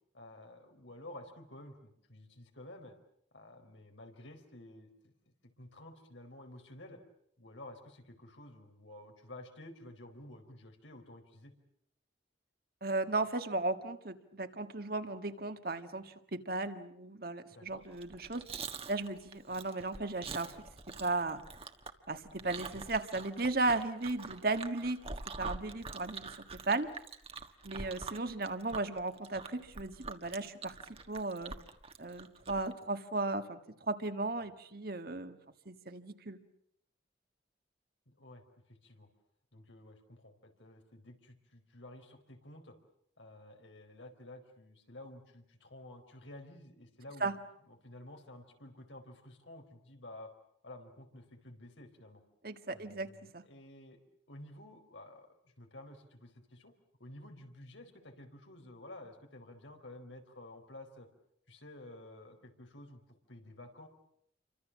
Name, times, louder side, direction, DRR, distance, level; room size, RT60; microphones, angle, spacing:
voice 1, 0.1-2.9 3.3-7.0 7.4-11.5 17.5-17.8 38.1-39.1 39.5-42.8 43.2-47.4 47.6-50.3 50.6-52.2 52.7-54.0 54.3-56.7 57.0-61.1 61.5-63.9, left 1 dB, 85° left, 5 dB, 4.5 m, -52 dB
voice 2, 12.8-18.5 18.9-20.5 21.0-21.4 22.1-25.0 25.4-26.4 26.6-26.9 27.6-30.7 31.1-31.5 32.0-33.6 33.9-35.4 35.6-36.4 47.2-47.3 52.4-53.4, right 3 dB, 50° right, 8 dB, 1.7 m, -35 dB
Chewing mastication, 17.9-32.7, right 4 dB, 30° right, 1.5 m, -45 dB
29.0 x 25.0 x 7.5 m, 0.71 s
head